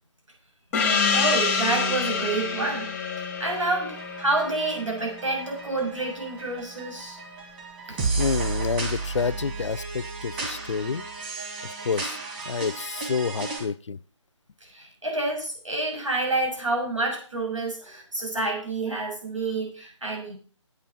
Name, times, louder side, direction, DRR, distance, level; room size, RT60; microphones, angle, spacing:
Gong, 0.7-5.8, left 5 dB, 5° left, 0.9 m, -27 dB
voice 1, 1.1-2.9 3.4-7.2 7.9-8.0 14.6-20.4, right 2 dB, 85° right, 1 dB, 6.5 m, -28 dB
sound 1, 3.9-13.6, right 4 dB, 20° right, 2.1 m, -33 dB
voice 2, 7.9-11.0 11.8-12.2 12.5-14.0, left 5 dB, 75° left, 19 dB, 0.5 m, -28 dB
9.2 x 8.7 x 5.7 m, 0.40 s
hypercardioid pair, 165°, 16 cm